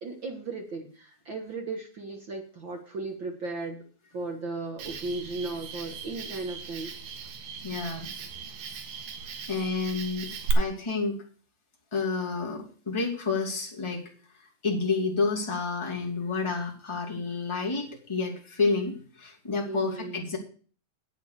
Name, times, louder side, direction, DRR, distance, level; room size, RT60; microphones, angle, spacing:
voice 1, 0.0-3.8 4.1-6.9 19.6-20.2, right 3 dB, 60° right, 2 dB, 1.2 m, -36 dB
Cricket, 4.8-10.5, right 7 dB, 85° right, 3.4 m, -38 dB
voice 2, 7.6-8.1 9.5-11.2 11.9-14.0 14.4-20.4, left 4 dB, 10° left, -2 dB, 1.9 m, -30 dB
9.0 x 8.1 x 6.7 m, 0.42 s
omnidirectional pair, 4.4 m